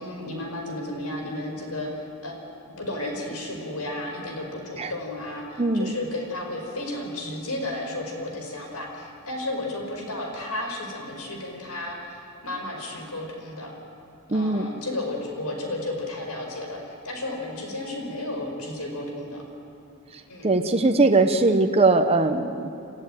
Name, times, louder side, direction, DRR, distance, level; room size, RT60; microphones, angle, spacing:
voice 1, 0.0-2.3 2.8-13.7 14.3-19.4 20.3-20.5, left 1 dB, 80° left, 2 dB, 5.0 m, -33 dB
voice 2, 5.6-5.9 14.3-14.7 20.4-22.7, right 3 dB, 30° right, 6 dB, 0.9 m, -20 dB
27.0 x 14.5 x 9.0 m, 2.6 s
head